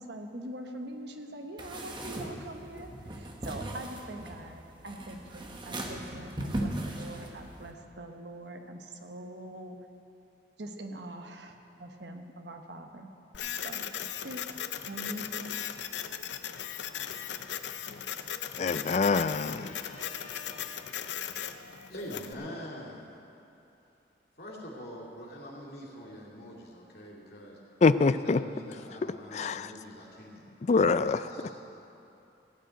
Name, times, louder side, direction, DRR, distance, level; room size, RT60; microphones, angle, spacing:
voice 1, 0.0-9.8 10.6-13.1 13.5-13.8 14.2-14.4 14.9-15.6, right 1 dB, 75° right, 1.1 m, -43 dB
sound 1, 1.6-7.7, right 1 dB, 25° right, 1.2 m, -38 dB
Printer, 13.3-22.3, left 9 dB, 90° left, 0.6 m, -38 dB
voice 2, 18.6-19.8 27.8-28.4 29.3-29.7 30.7-31.3, left 4 dB, 40° left, 0.4 m, -25 dB
voice 3, 19.5-20.9 21.9-23.3 24.4-27.6 28.0-30.4 31.0-31.5, left 1 dB, 60° left, 2.5 m, -45 dB
16.0 x 6.5 x 9.3 m
head